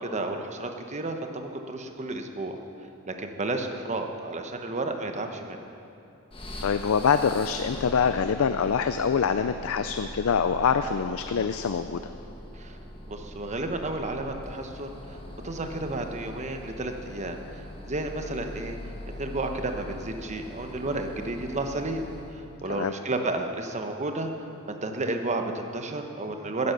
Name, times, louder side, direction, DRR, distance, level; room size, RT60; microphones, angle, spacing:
voice 1, 0.0-2.6 3.1-5.6 12.6-12.8 13.1-15.2 15.4-18.8 19.1-22.0 22.3-24.3 24.7-26.7, right 2 dB, 30° right, 5 dB, 1.0 m, -32 dB
sound 1, 6.3-22.5, left 1 dB, 25° left, 1.3 m, -42 dB
voice 2, 6.6-12.0 22.7-22.9, left 6 dB, 65° left, 9 dB, 0.5 m, -25 dB
15.0 x 9.7 x 6.7 m, 2.8 s
head